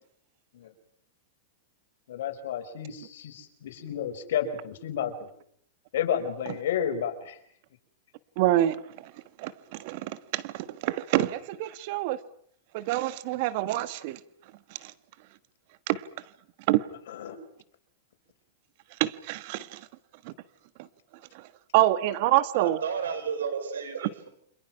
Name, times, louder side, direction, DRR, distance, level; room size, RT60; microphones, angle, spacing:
voice 1, 2.1-5.3 5.9-7.4 17.1-17.4, left 9 dB, 75° left, 5.0 m, -31 dB
voice 2, 8.4-8.8 9.4-12.2 12.7-14.2 14.8-14.9 15.9-16.0 16.7-16.8 19.0-19.8 20.2-20.3 21.3-21.4 21.7-22.8, right 15 dB, 55° right, 1.3 m, -26 dB
voice 3, 22.5-24.3, right 6 dB, 90° right, 5.2 m, -32 dB
29.5 x 27.0 x 5.9 m
hypercardioid pair, 125°, 0 cm